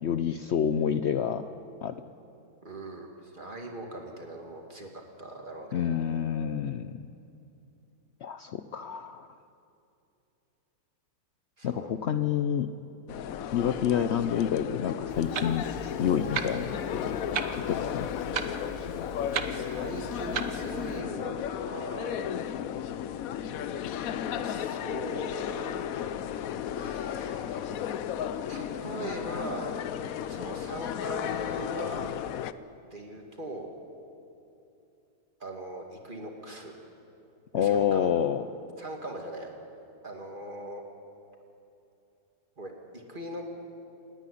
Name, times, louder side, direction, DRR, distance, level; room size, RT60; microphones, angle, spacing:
voice 1, 0.0-1.5 1.8-1.9 5.7-7.1 8.2-9.3 11.6-12.7 13.5-17.2 17.7-18.3 37.5-38.4, left 8 dB, 85° left, 10 dB, 0.6 m, -28 dB
voice 2, 2.6-4.9 5.2-5.9 11.6-12.0 19.5-22.2 24.3-25.9 26.7-27.8 28.5-29.7 30.3-32.1 32.8-33.7 35.4-36.8 37.5-38.1 38.8-39.5 40.0-40.8 42.6-43.6, right 1 dB, 30° right, 1 dB, 2.3 m, -40 dB
sound 1, 13.1-32.5, left 9 dB, 65° left, 0.9 m, -34 dB
Clock, 15.1-21.0, right 7 dB, 85° right, 1.6 m, -37 dB
28.0 x 9.9 x 9.9 m, 2.8 s
omnidirectional pair, 1.8 m